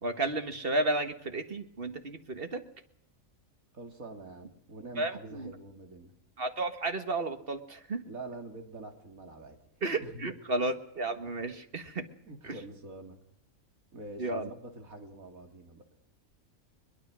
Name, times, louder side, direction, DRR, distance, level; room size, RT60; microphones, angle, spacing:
voice 1, 0.0-2.6 5.0-5.5 6.4-8.0 9.8-12.1 12.4-12.6 14.2-14.5, right 2 dB, 45° right, 8 dB, 1.8 m, -32 dB
voice 2, 3.7-6.1 8.0-9.6 10.0-10.3 12.3-13.2 13.9-15.8, right 2 dB, 90° right, 4 dB, 3.3 m, -45 dB
22.0 x 21.5 x 6.2 m, 0.70 s
omnidirectional pair, 1.4 m